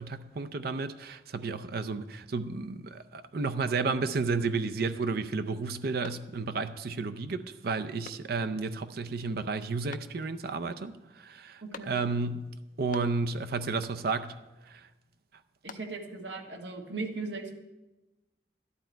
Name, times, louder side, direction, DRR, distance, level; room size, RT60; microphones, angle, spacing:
voice 1, 0.0-14.4 14.7-14.9, right 4 dB, 60° right, 10 dB, 0.5 m, -32 dB
sound 1, 6.0-6.7 7.1-7.2 8.0-8.6 9.9-10.5 11.7-12.3 12.6-13.4 13.8-14.3 15.3-16.2, left 5 dB, 50° left, 0.5 m, -50 dB
voice 2, 11.6-11.9 15.6-17.5, right 3 dB, 90° right, 2 dB, 1.6 m, -38 dB
13.5 x 11.5 x 4.5 m, 1.1 s
head